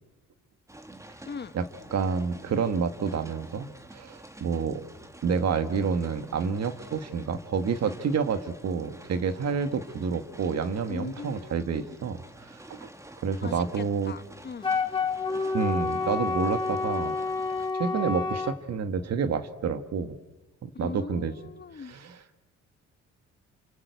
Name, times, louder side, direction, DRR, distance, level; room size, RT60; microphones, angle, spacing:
sound 1, 0.7-17.7, right 1 dB, 10° right, 1.9 m, -49 dB
voice 1, 1.9-4.8 5.2-12.9 13.2-14.1 15.5-17.2 17.7-20.2 20.6-21.3 21.7-22.2, right 6 dB, 60° right, 9 dB, 1.8 m, -29 dB
voice 2, 10.9-12.0 13.4-14.7 20.7-21.9, left 5 dB, 35° left, 14 dB, 1.1 m, -40 dB
Wind instrument woodwind instrument, 14.6-18.6, left 4 dB, 15° left, 2.6 m, -29 dB
29.0 x 24.0 x 8.3 m, 1.1 s
cardioid pair, 90°, 30 cm